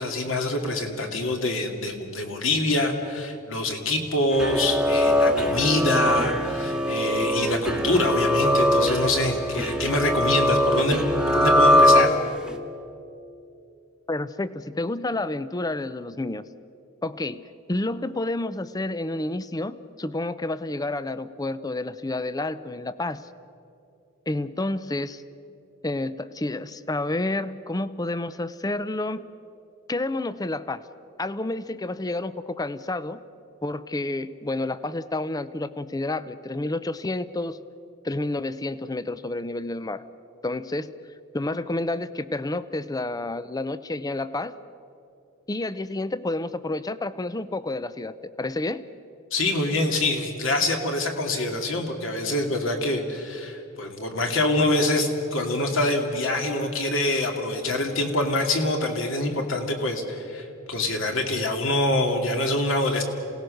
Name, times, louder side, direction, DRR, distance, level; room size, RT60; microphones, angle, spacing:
voice 1, 0.0-11.0 11.3-12.1 49.3-63.0, left 2 dB, 65° left, 3 dB, 2.5 m, -25 dB
sound 1, 4.3-12.5, equal, 5° right, 1.2 m, -21 dB
voice 2, 14.1-16.4 17.0-23.3 24.3-25.2 25.8-29.3 29.9-30.8 31.2-33.2 33.6-37.6 38.0-40.0 40.4-40.9 41.3-44.5 45.5-48.8, left 2 dB, 15° left, 15 dB, 0.5 m, -29 dB
27.5 x 18.0 x 6.5 m, 2.6 s
head